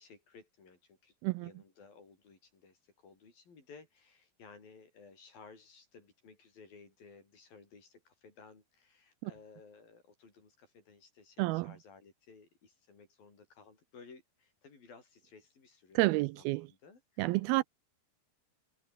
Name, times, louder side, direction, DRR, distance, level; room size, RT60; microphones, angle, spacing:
voice 1, 0.0-17.6, left 4 dB, 55° left, 8.1 m, -57 dB
voice 2, 11.4-11.7 16.0-16.7 17.2-17.6, right 21 dB, 85° right, 2.2 m, -29 dB
omnidirectional pair, 4.8 m